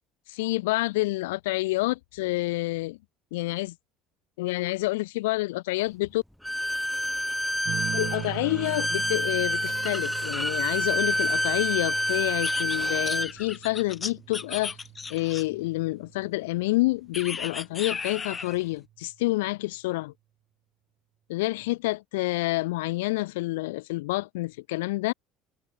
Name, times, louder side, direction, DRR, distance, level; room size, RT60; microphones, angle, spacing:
voice 1, 0.3-3.0 3.3-3.7 4.4-6.2 7.9-14.8 15.1-20.1 21.3-25.1, left 20 dB, 75° left, 1.3 m, -28 dB
Bowed string instrument, 6.4-13.3, equal, 5° left, 3.0 m, -28 dB
sound 1, 7.7-16.7 18.2-18.7, right 13 dB, 55° right, 6.1 m, -41 dB
sound 2, 12.4-15.7 17.1-18.6, left 5 dB, 25° left, 0.9 m, -35 dB
hypercardioid pair, 70°, 0 cm